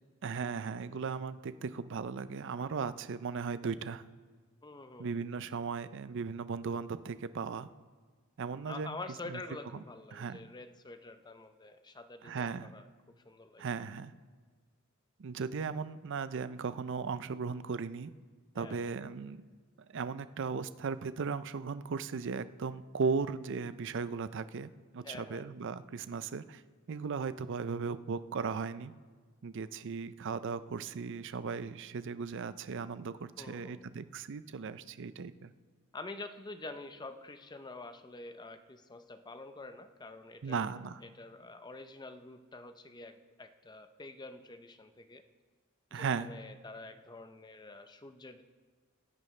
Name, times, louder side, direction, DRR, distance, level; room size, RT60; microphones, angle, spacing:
voice 1, 0.2-4.0 5.0-7.7 8.4-9.0 9.3-9.4 9.7-9.8 10.1-10.4 12.2-12.7 13.6-14.1 15.2-18.1 18.5-19.4 19.9-26.6 26.9-28.9 29.4-35.5 40.4-41.0 45.9-46.3, right 5 dB, 60° right, 14 dB, 0.5 m, -37 dB
voice 2, 4.6-5.1 8.7-12.9 13.2-13.7 18.5-18.8 25.0-25.5 33.4-33.8 35.9-45.2 45.9-48.4, left 2 dB, 20° left, 9 dB, 0.6 m, -47 dB
21.5 x 10.5 x 3.3 m, 1.5 s
head